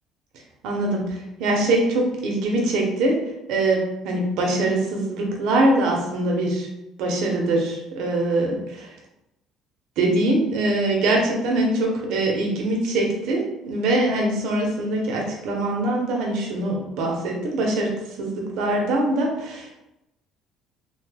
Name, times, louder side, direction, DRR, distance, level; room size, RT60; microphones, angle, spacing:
voice 1, 0.6-3.2 3.5-6.7 7.0-8.9 10.0-17.9 18.2-19.7, right 2 dB, 75° right, 0 dB, 0.8 m, -23 dB
2.7 x 2.2 x 3.3 m, 0.91 s
cardioid pair, 115°, 0 cm